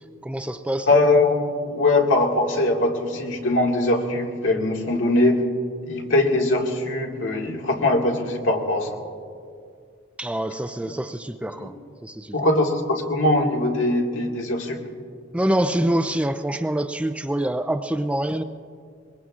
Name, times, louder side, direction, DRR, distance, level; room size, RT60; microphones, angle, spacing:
voice 1, 0.2-0.9 10.2-11.7 12.0-12.3 15.3-18.4, right 1 dB, 5° right, 9 dB, 0.4 m, -25 dB
voice 2, 0.9-5.4 5.8-9.0 11.5-11.7 12.3-14.8, left 2 dB, 80° left, 0 dB, 1.9 m, -21 dB
23.5 x 21.5 x 2.5 m, 2.3 s
head